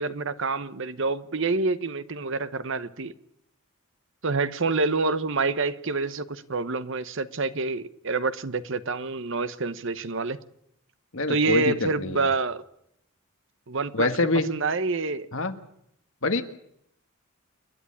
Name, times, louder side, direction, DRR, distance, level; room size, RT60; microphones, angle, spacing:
voice 1, 0.0-3.1 4.2-10.4 11.3-12.6 13.7-14.1 14.5-15.3, right 3 dB, 60° right, 1.0 m, -27 dB
voice 2, 11.1-12.2 13.9-14.5 15.3-15.5 16.2-16.4, left 2 dB, 60° left, 1.6 m, -25 dB
28.5 x 11.0 x 10.0 m
head